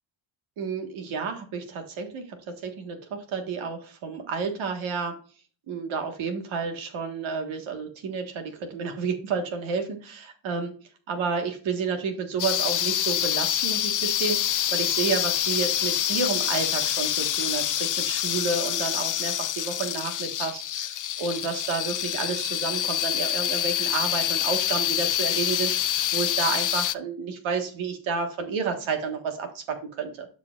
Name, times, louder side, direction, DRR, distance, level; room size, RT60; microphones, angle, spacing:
voice 1, 0.6-5.2 5.7-10.7 11.1-30.3, right 5 dB, 85° right, 5 dB, 1.6 m, -30 dB
sound 1, 12.4-26.9, left 11 dB, 45° left, 0.5 m, -26 dB
12.5 x 4.9 x 2.4 m, 0.39 s
cardioid pair, 65°, 46 cm